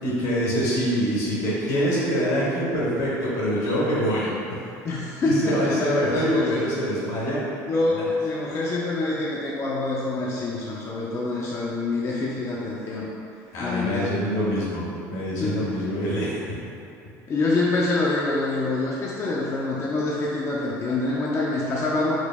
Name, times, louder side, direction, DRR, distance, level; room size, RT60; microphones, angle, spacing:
voice 1, 0.0-4.3 5.2-7.4 7.9-8.1 13.5-16.4, equal, 75° left, -7 dB, 1.5 m, -25 dB
voice 2, 4.8-6.6 7.7-13.1 13.6-14.2 15.4-15.9 17.3-22.2, left 2 dB, 35° left, -5 dB, 0.5 m, -26 dB
4.9 x 2.0 x 3.4 m, 2.7 s
supercardioid pair, 95°, 8 cm